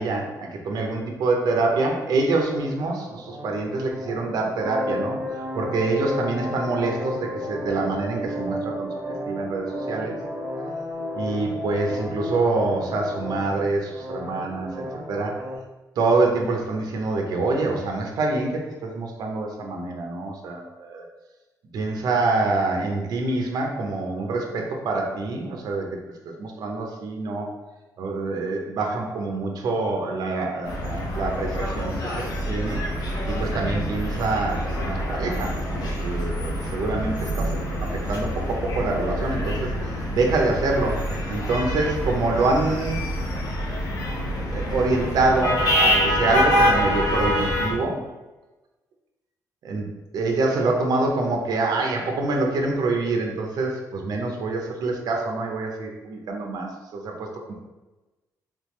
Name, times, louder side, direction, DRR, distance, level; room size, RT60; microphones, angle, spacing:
voice 1, 0.0-8.9 9.3-10.2 11.1-14.7 15.1-15.4 16.0-21.0 21.7-25.9 26.2-27.5 28.0-31.9 32.5-32.8 33.3-37.6 37.9-43.0 43.8-44.1 44.5-48.0 49.6-57.5, right 3 dB, 75° right, 1 dB, 0.7 m, -26 dB
sound 1, 1.5-15.5, equal, 35° right, 0.8 m, -33 dB
sound 2, 30.6-47.7, equal, 70° left, 1.1 m, -26 dB
3.6 x 3.4 x 3.1 m, 1.1 s
cardioid pair, 125°, 7 cm